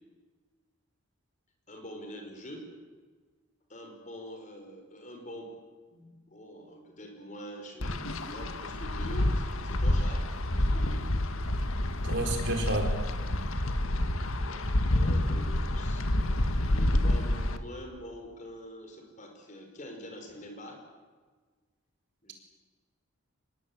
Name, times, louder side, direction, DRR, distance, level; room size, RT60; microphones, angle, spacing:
voice 1, 1.7-2.7 3.7-5.5 5.9-11.0 14.4-20.8 22.2-22.3, equal, 35° left, 3 dB, 5.4 m, -45 dB
Wind, 7.8-17.6, left 1 dB, 75° left, 1.7 m, -28 dB
voice 2, 12.0-13.0, right 1 dB, 55° right, 3 dB, 4.7 m, -30 dB
26.0 x 20.5 x 8.9 m, 1.4 s
head